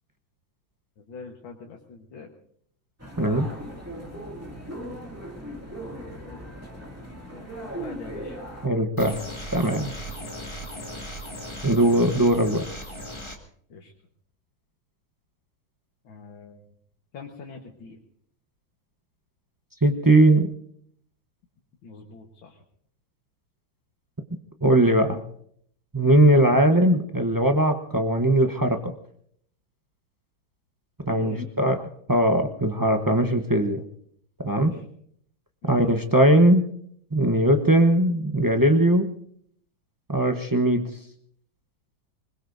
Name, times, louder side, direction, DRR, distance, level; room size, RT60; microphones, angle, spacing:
voice 1, 1.0-2.3 3.2-3.7 5.3-6.9 7.3-8.4 13.7-13.9 16.0-16.6 17.1-18.0 21.8-22.6 31.0-31.7 34.5-34.8 35.6-35.8, left 4 dB, 85° left, 1 dB, 2.2 m, -45 dB
sound 1, 3.0-8.7, right 1 dB, 5° right, 2.1 m, -38 dB
voice 2, 8.6-9.2 9.5-9.9 11.6-12.6 19.8-20.5 24.6-25.2 25.9-28.9 31.1-33.8 34.4-34.8 35.7-36.7 37.1-39.1 40.1-40.9, right 1 dB, 30° right, 3 dB, 0.4 m, -20 dB
sound 2, 9.0-13.4, equal, 15° left, 1.7 m, -37 dB
26.0 x 20.5 x 2.7 m, 0.65 s
omnidirectional pair, 2.1 m